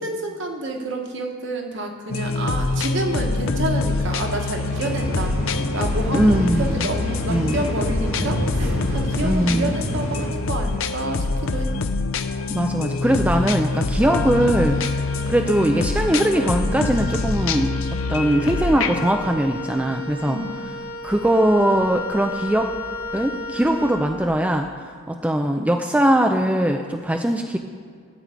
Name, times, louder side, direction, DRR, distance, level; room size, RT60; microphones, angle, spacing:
voice 1, 0.0-5.4 5.7-11.7 20.3-20.5, right 2 dB, 55° right, 2 dB, 1.3 m, -29 dB
sound 1, 2.1-19.1, left 3 dB, 65° left, 0.6 m, -25 dB
sound 2, 4.7-10.3, equal, 70° right, 2.0 m, -29 dB
voice 2, 6.1-6.9 7.3-7.6 9.2-9.8 12.5-17.7 18.1-20.4 21.0-22.7 23.1-24.7 25.1-27.6, right 1 dB, 5° right, 4 dB, 0.4 m, -21 dB
Wind instrument woodwind instrument, 14.0-24.4, left 1 dB, 90° left, 2.6 m, -34 dB
14.0 x 4.7 x 8.3 m, 2.2 s
head